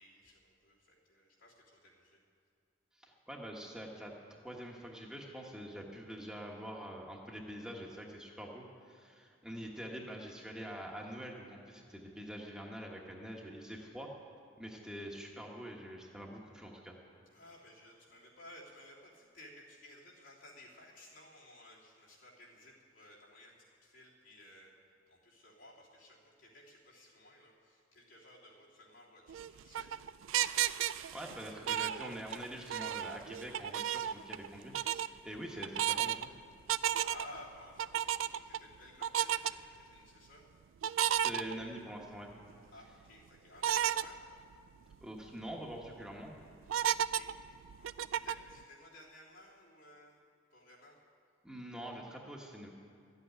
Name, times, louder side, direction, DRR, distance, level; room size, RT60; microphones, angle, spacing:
voice 1, 0.0-2.2 17.3-24.7 25.1-30.0 36.9-40.5 42.7-44.2 46.9-47.3 47.7-50.2 50.5-51.0, left 1 dB, 80° left, -6 dB, 3.3 m, -56 dB
voice 2, 2.9-14.1 14.6-16.9 31.1-36.3 41.1-42.3 45.0-46.4 51.4-52.7, equal, 5° right, -1 dB, 1.2 m, -45 dB
sound 1, 29.3-32.5 32.7-34.5 34.7-35.1 35.6-36.3 36.7-37.4 37.8-38.6 39.0-39.5 40.8-42.0 42.5-42.6 43.6-44.1 44.5-44.6 44.9-45.0 45.5-45.9 46.7-48.5, right 11 dB, 85° right, 0.4 m, -33 dB
13.5 x 8.1 x 9.9 m, 2.3 s
head